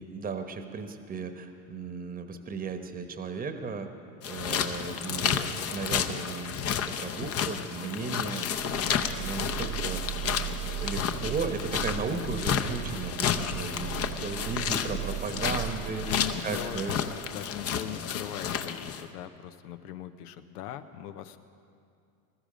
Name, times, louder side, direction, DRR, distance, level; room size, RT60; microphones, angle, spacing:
voice 1, 0.0-3.9 4.3-10.0 10.8-13.9 14.2-17.0, right 4 dB, 20° right, 7 dB, 1.1 m, -35 dB
sound 1, 4.2-19.1, left 8 dB, 30° left, 0.8 m, -31 dB
sound 2, 8.5-17.6, right 13 dB, 80° right, 0.7 m, -38 dB
voice 2, 16.1-16.8 17.3-21.4, left 11 dB, 85° left, 11 dB, 1.0 m, -40 dB
21.5 x 13.0 x 5.1 m, 2.4 s
supercardioid pair, 115°, 45 cm